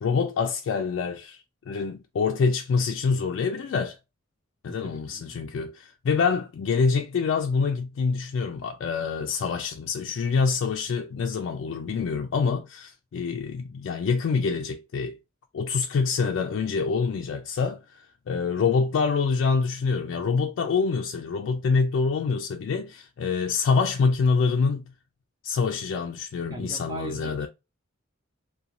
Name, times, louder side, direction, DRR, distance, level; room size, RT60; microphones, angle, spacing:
voice 1, 0.0-4.0 4.6-15.2 15.5-24.9 25.4-27.5, left 5 dB, 70° left, 0.3 m, -26 dB
voice 2, 4.7-5.4 26.5-27.5, right 2 dB, 20° right, 0.6 m, -39 dB
2.5 x 2.2 x 2.8 m
head